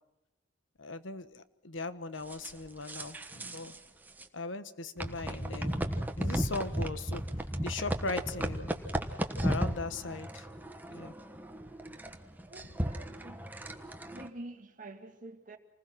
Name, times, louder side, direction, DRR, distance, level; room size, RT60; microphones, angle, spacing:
voice 1, 0.8-3.7 4.3-7.2 7.6-8.8 9.4-10.5 10.9-11.1, left 3 dB, 85° left, 1.3 m, -39 dB
sound 1, 2.3-3.8 4.1-4.2 5.0-14.3, right 1 dB, 10° right, 1.3 m, -35 dB
voice 2, 12.4-13.5 14.1-15.6, right 2 dB, 45° right, 2.0 m, -47 dB
28.5 x 20.0 x 6.1 m
head